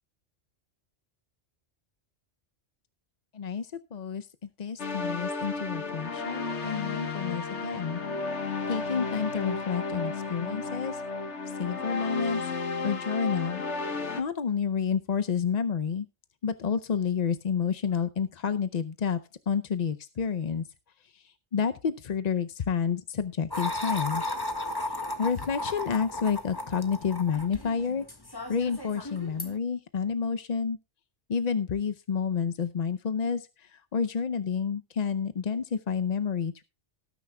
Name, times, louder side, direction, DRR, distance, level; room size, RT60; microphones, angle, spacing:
voice 1, 3.3-4.3 4.6-11.0 11.6-12.4 12.8-13.6 14.2-16.1 16.4-19.2 19.5-20.6 21.1-24.2 24.7-28.0 28.5-30.8 31.3-36.6, left 6 dB, 45° left, 10 dB, 0.6 m, -30 dB
sound 1, 4.8-14.2, left 4 dB, 70° left, 1.7 m, -33 dB
sound 2, 23.5-29.6, left 2 dB, 20° left, 1.6 m, -35 dB
18.5 x 10.0 x 2.3 m, 0.29 s
omnidirectional pair, 1.2 m